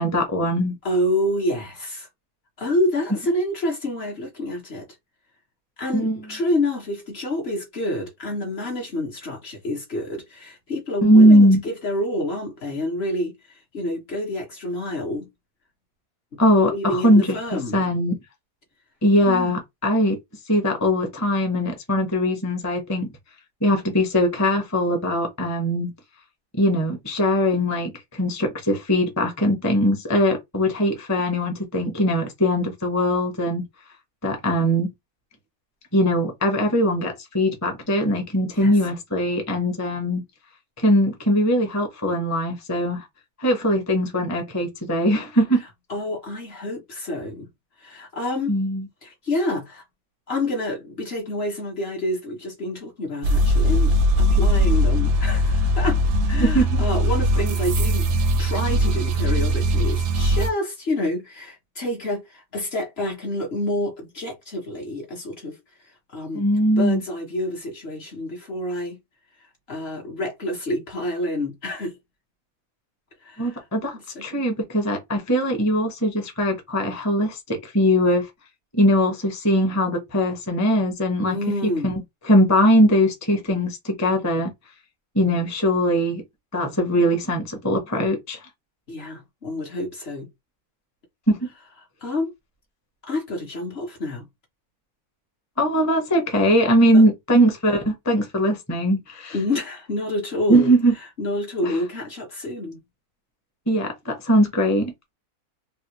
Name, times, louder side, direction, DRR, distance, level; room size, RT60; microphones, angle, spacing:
voice 1, 0.0-0.7 5.9-6.2 11.0-11.6 16.4-18.2 19.0-20.2 20.5-23.1 23.6-25.9 26.5-33.6 34.2-34.9 35.9-40.2 40.8-43.0 43.4-45.6 48.5-48.8 56.4-56.7 66.3-67.0 73.4-78.3 78.7-81.4 81.8-84.5 85.1-86.2 86.5-88.4 91.3-91.5 95.6-99.4 100.5-100.9 101.6-101.8 103.7-104.9, equal, 15° left, 0.7 m, -20 dB
voice 2, 0.8-2.1 2.6-4.9 5.8-15.3 16.3-17.8 19.3-19.5 38.5-38.7 45.9-47.5 47.8-48.6 49.0-49.8 50.3-65.6 65.8-66.4 66.8-69.0 69.4-72.0 73.2-73.6 74.1-74.2 81.2-81.9 88.9-90.3 92.0-92.3 93.0-94.3 96.9-97.0 99.3-100.7 101.2-102.8, left 1 dB, 50° left, 1.0 m, -28 dB
sound 1, 53.2-60.5, equal, 70° right, 0.7 m, -20 dB
3.4 x 2.3 x 2.9 m
omnidirectional pair, 1.6 m